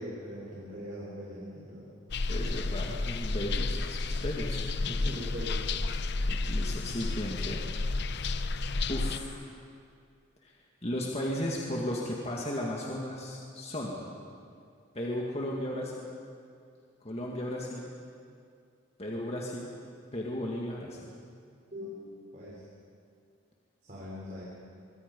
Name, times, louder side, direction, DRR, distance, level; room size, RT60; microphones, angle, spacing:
voice 1, 0.0-1.9 2.3-2.4 5.0-5.7 21.7-22.6 23.8-24.4, equal, 40° right, -7 dB, 4.2 m, -41 dB
sound 1, 2.1-9.2, left 3 dB, 55° left, 0.7 m, -31 dB
voice 2, 2.3-5.1 6.3-7.7 8.9-9.4 10.4-10.6 10.8-14.0 14.9-16.2 17.0-18.0 19.0-19.8 20.1-21.1, left 1 dB, 30° left, -2 dB, 2.1 m, -35 dB
25.0 x 24.0 x 5.5 m, 2.3 s
head